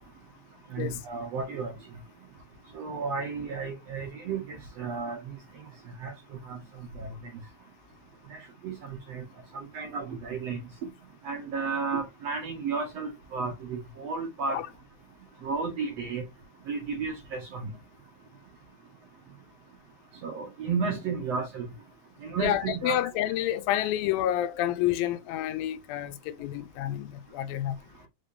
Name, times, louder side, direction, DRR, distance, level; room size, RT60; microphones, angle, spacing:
voice 1, 0.7-1.7 2.7-5.2 6.0-6.6 7.0-7.1 8.3-9.2 9.5-10.6 11.2-14.6 15.4-16.2 16.7-17.7 20.2-21.7 22.2-23.0, right 5 dB, 65° right, 1.7 m, -33 dB
voice 2, 22.4-27.8, left 12 dB, 80° left, 2.3 m, -29 dB
5.6 x 3.5 x 2.5 m
omnidirectional pair, 4.2 m